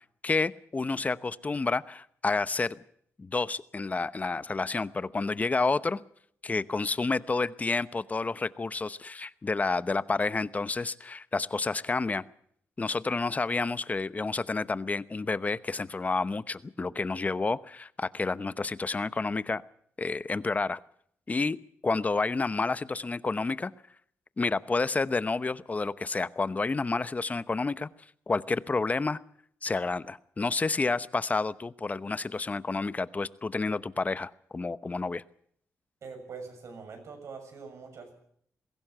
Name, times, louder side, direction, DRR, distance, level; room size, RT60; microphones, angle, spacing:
voice 1, 0.2-2.7 3.2-6.0 6.4-12.2 12.8-19.6 20.0-20.8 21.3-21.6 21.8-23.7 24.4-27.9 28.3-29.2 29.6-35.2, left 3 dB, 30° left, 15 dB, 0.9 m, -30 dB
voice 2, 36.0-38.1, right 5 dB, 65° right, 5 dB, 6.9 m, -43 dB
22.0 x 16.5 x 7.9 m, 0.65 s
cardioid pair, 95°, 5 cm